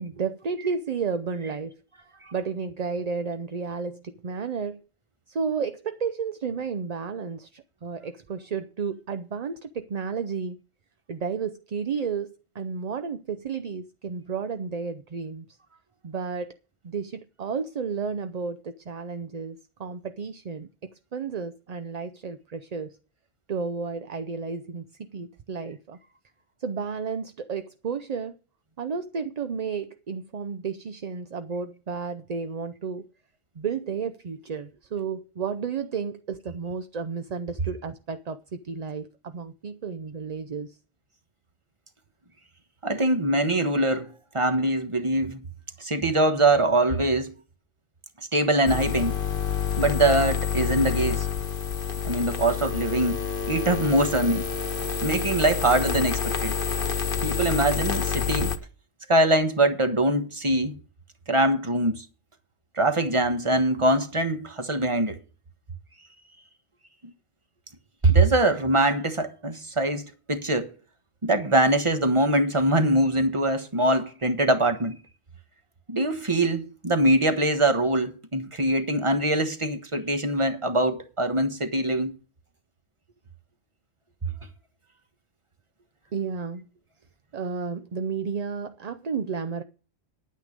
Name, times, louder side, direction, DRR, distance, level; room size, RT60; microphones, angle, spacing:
voice 1, 0.0-1.8 2.3-4.8 5.3-10.6 11.1-15.4 16.0-16.6 16.8-23.0 23.5-26.0 26.6-28.3 28.8-33.1 33.6-40.8 86.1-86.7 87.3-89.6, right 5 dB, 45° right, 0.7 m, -32 dB
voice 2, 42.8-45.4 45.8-47.3 48.3-49.2 49.8-51.3 52.0-53.2 53.5-54.5 55.0-56.6 57.2-58.5 59.1-60.8 61.3-62.0 62.8-65.2 68.0-70.7 71.2-75.0 75.9-82.1, right 1 dB, 30° right, 1.3 m, -23 dB
sound 1, 48.7-58.6, left 7 dB, 55° left, 1.3 m, -28 dB
10.5 x 9.3 x 5.1 m
omnidirectional pair, 1.1 m